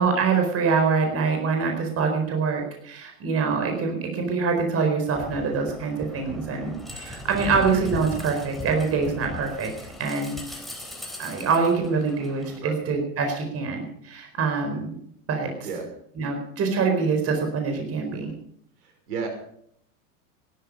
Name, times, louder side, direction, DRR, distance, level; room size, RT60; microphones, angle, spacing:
voice 1, 0.0-10.6 11.2-15.0 15.3-15.5 16.2-18.3, right 5 dB, 30° right, 4 dB, 4.4 m, -25 dB
sound 1, 5.1-12.6, left 1 dB, ahead, 3.7 m, -38 dB
voice 2, 18.8-19.3, right 5 dB, 75° right, 4 dB, 5.8 m, -32 dB
17.0 x 13.0 x 5.4 m, 0.68 s
hypercardioid pair, 120°, 46 cm